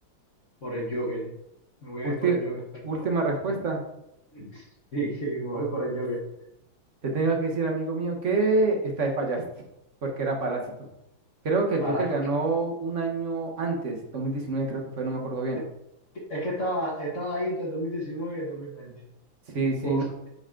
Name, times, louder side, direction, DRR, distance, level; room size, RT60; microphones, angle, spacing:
voice 1, 0.6-1.3 1.8-2.6 2.9-3.0 4.3-4.6 4.9-6.2 11.8-12.0 16.3-19.0 19.8-20.0, right 1 dB, 40° left, -5 dB, 1.7 m, -31 dB
voice 2, 2.0-2.4 2.8-3.8 7.0-9.4 10.0-10.6 11.4-15.6 19.5-20.0, right 3 dB, 40° right, 1 dB, 1.4 m, -26 dB
9.3 x 4.0 x 3.8 m, 0.84 s
omnidirectional pair, 2.1 m